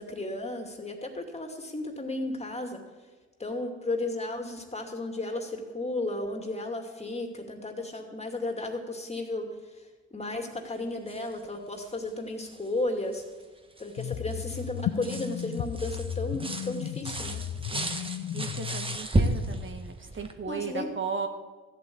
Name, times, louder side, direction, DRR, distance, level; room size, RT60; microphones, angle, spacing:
voice 1, 0.0-2.9 3.4-13.2 13.8-17.4 20.5-20.9, left 2 dB, 20° left, 4 dB, 2.4 m, -34 dB
sound 1, 11.1-11.5 11.8-11.9 12.4-12.7 13.1-20.3, right 1 dB, 15° right, 1.4 m, -33 dB
sound 2, 14.0-19.0, left 10 dB, 70° left, 0.7 m, -34 dB
voice 2, 18.3-21.3, right 5 dB, 40° right, 6 dB, 1.4 m, -36 dB
14.0 x 8.4 x 8.5 m, 1.3 s
cardioid pair, 90°, 30 cm